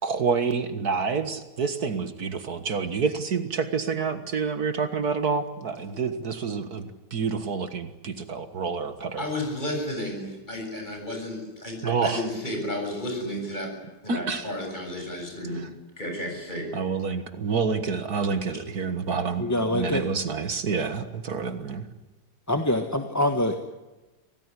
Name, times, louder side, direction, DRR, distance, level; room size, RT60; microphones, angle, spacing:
voice 1, 0.0-9.2 11.8-12.3 14.1-14.5 15.5-15.7 16.7-19.5 19.7-21.9, right 5 dB, 65° right, 10 dB, 2.0 m, -28 dB
voice 2, 9.2-13.7 14.0-15.7 16.0-16.7, left 1 dB, 25° left, 2 dB, 7.6 m, -32 dB
voice 3, 19.4-20.0 22.5-23.6, left 1 dB, 10° left, 5 dB, 1.4 m, -24 dB
26.0 x 18.5 x 9.9 m, 1.1 s
omnidirectional pair, 1.8 m